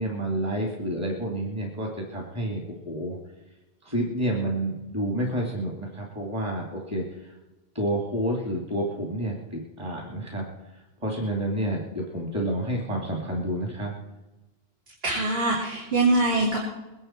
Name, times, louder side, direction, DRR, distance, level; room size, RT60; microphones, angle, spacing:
voice 1, 0.0-3.2 3.8-7.4 7.7-10.5 10.7-13.9, right 1 dB, 25° right, 0 dB, 2.6 m, -29 dB
voice 2, 15.0-16.6, right 2 dB, 65° right, -5 dB, 3.5 m, -23 dB
22.0 x 11.0 x 4.5 m, 1.1 s
omnidirectional pair, 1.1 m